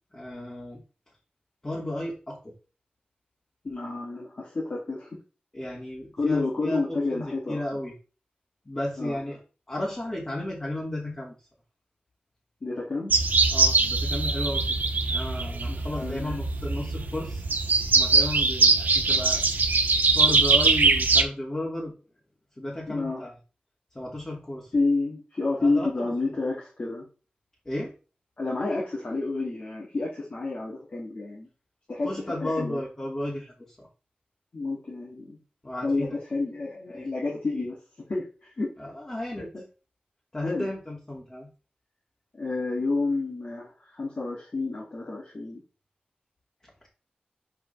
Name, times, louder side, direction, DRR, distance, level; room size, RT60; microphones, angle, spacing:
voice 1, 0.1-0.8 1.6-2.5 5.5-6.8 7.1-7.9 8.7-9.4 9.7-11.3 13.5-14.6 15.1-17.4 17.9-19.4 20.1-21.9 22.6-23.3 23.9-24.7 25.6-25.9 27.7-27.9 32.0-33.5 33.8-33.9 35.6-36.2 36.9-37.1 38.8-39.5 40.3-41.5, left 1 dB, 30° left, -3 dB, 2.6 m, -33 dB
voice 2, 3.6-5.2 6.1-7.8 9.0-9.2 12.6-13.1 15.7-16.5 22.9-23.2 24.7-27.1 28.4-31.5 31.9-32.8 34.5-35.4 35.8-37.8 38.1-38.7 39.4-39.6 40.4-40.7 42.3-45.6, left 3 dB, 60° left, -3 dB, 2.7 m, -30 dB
sound 1, 13.1-21.2, right 3 dB, 75° right, 1.1 m, -22 dB
8.2 x 5.2 x 3.5 m, 0.34 s
wide cardioid pair, 70°, 3 cm